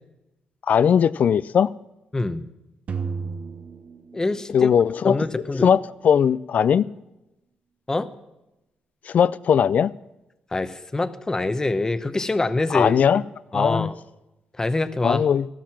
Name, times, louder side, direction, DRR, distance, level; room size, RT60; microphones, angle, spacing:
voice 1, 0.7-1.7 4.5-5.2 5.6-6.9 9.1-9.9 12.7-13.2 13.5-13.9 15.0-15.5, left 8 dB, 60° left, 0.4 m, -19 dB
voice 2, 2.1-2.4 4.1-4.7 5.0-5.7 7.9-8.1 10.5-13.0 13.5-14.0 14.6-15.3, left 2 dB, 20° left, 0.8 m, -25 dB
sound 1, 2.9-5.0, right 5 dB, 55° right, 1.1 m, -33 dB
13.5 x 12.0 x 5.9 m
cardioid pair, 90°, 3 cm